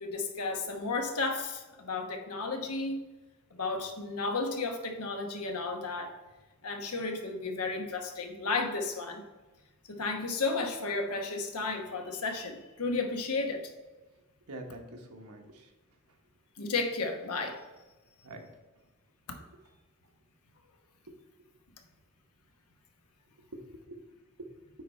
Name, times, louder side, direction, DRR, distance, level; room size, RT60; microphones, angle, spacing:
voice 1, 0.0-3.0 3.5-6.1 6.6-9.2 9.9-13.6 16.6-17.6, left 3 dB, 80° left, 4 dB, 1.1 m, -33 dB
voice 2, 14.5-15.7 18.2-18.5 23.5-24.0 24.4-24.5, right 1 dB, 80° right, 3 dB, 1.1 m, -45 dB
9.2 x 4.1 x 4.3 m, 1.2 s
head